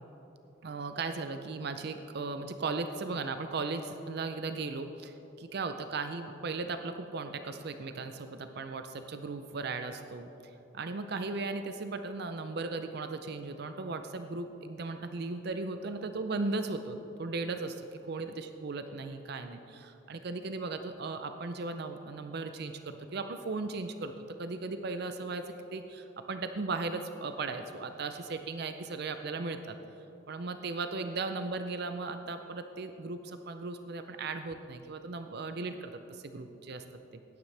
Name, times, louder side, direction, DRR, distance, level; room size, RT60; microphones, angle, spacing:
voice 1, 0.6-10.3 10.7-17.8 18.1-24.1 24.4-29.8 30.3-36.8, right 3 dB, 55° right, 8 dB, 0.5 m, -37 dB
17.5 x 9.7 x 3.3 m, 3.0 s
head